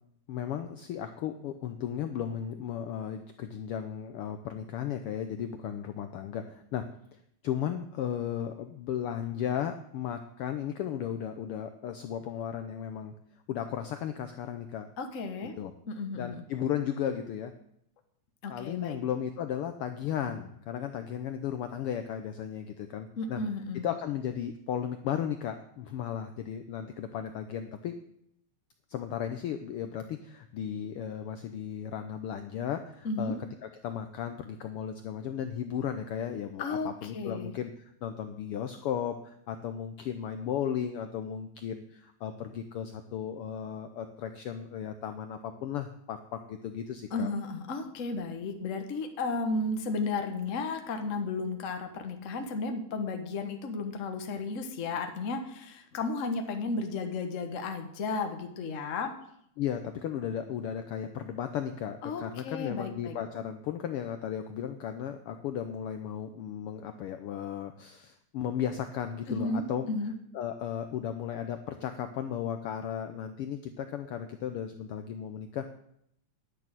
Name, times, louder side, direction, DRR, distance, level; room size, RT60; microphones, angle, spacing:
voice 1, 0.3-6.9 7.1-13.1 13.5-14.9 15.6-15.7 16.1-17.5 18.5-23.4 23.8-27.9 28.9-33.4 33.6-37.7 38.0-47.3 59.6-69.9 70.3-75.6, left 9 dB, 85° left, 8 dB, 1.2 m, -35 dB
voice 2, 15.0-15.5 15.9-16.4 18.4-19.0 23.2-23.9 33.0-33.4 36.6-37.5 47.1-59.1 62.0-63.2 69.3-70.1, left 3 dB, 55° left, 5 dB, 0.8 m, -33 dB
11.0 x 6.2 x 8.9 m, 0.72 s
omnidirectional pair, 3.3 m